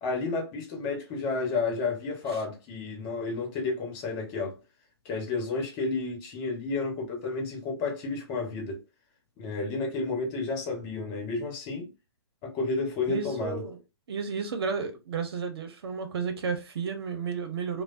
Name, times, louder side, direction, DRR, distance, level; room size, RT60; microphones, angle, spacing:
voice 1, 0.0-4.6 5.0-8.8 9.4-11.9 12.4-13.6, left 3 dB, 35° left, 1.2 m, -31 dB
voice 2, 13.1-13.8 14.1-17.8, right 5 dB, 65° right, 0.9 m, -32 dB
3.3 x 2.3 x 2.5 m
hypercardioid pair, 125°, 14 cm